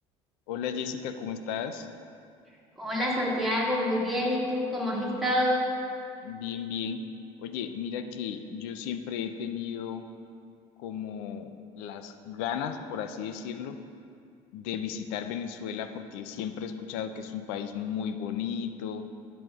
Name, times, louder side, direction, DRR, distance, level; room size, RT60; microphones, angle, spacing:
voice 1, 0.5-1.9 6.2-7.0 7.4-10.0 10.8-13.8 14.5-19.0, left 8 dB, 80° left, 9 dB, 0.5 m, -34 dB
voice 2, 2.8-5.7, left 1 dB, ahead, -6 dB, 1.9 m, -27 dB
10.5 x 7.0 x 2.4 m, 2.4 s
supercardioid pair, 85°, 15 cm